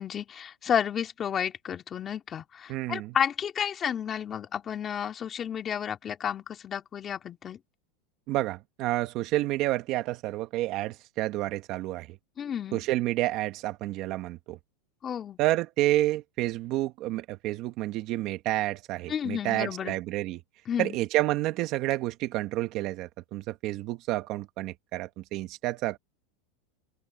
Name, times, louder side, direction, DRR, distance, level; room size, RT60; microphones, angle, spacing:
voice 1, 0.0-7.6 12.4-12.8 15.0-15.4 19.1-20.0 20.7-21.0, left 8 dB, 25° left, 3.2 m, -31 dB
voice 2, 2.7-3.2 8.3-12.2 12.7-14.6 15.4-20.4 20.8-26.0, right 17 dB, 45° right, 1.7 m, -29 dB
open air
supercardioid pair, 145°, 0 cm